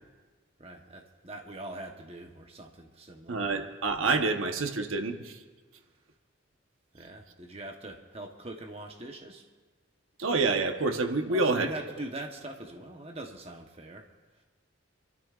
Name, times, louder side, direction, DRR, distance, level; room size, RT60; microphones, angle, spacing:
voice 1, 0.6-3.6 6.9-9.4 11.3-14.1, right 1 dB, 30° right, 2 dB, 1.0 m, -42 dB
voice 2, 3.3-5.4 10.2-11.7, right 3 dB, 85° right, 5 dB, 1.1 m, -27 dB
29.5 x 13.0 x 2.5 m, 1.4 s
head